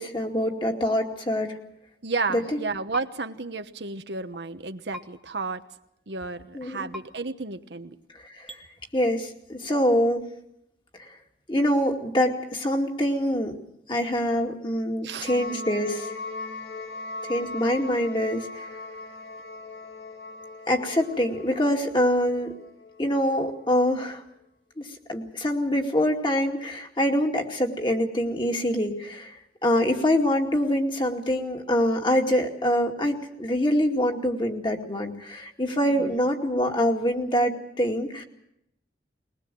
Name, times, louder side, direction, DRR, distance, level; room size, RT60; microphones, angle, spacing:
voice 1, 0.0-1.5 2.3-2.6 6.5-6.9 8.3-8.6 8.9-10.3 11.0-11.1 11.5-13.5 13.9-16.2 17.2-18.7 20.7-22.5 23.0-24.2 24.8-29.3 29.6-38.2, equal, 30° left, 2 dB, 2.4 m, -25 dB
voice 2, 2.0-5.6 6.1-8.0 15.0-15.3 35.9-36.1, right 3 dB, 80° right, 8 dB, 1.2 m, -32 dB
sound 1, 2.9-3.1 4.9-5.1 6.9-7.0 8.5-8.6, equal, ahead, 1.6 m, -39 dB
sound 2, 15.3-23.4, left 3 dB, 85° left, 2.4 m, -39 dB
21.5 x 20.5 x 7.7 m, 0.78 s
head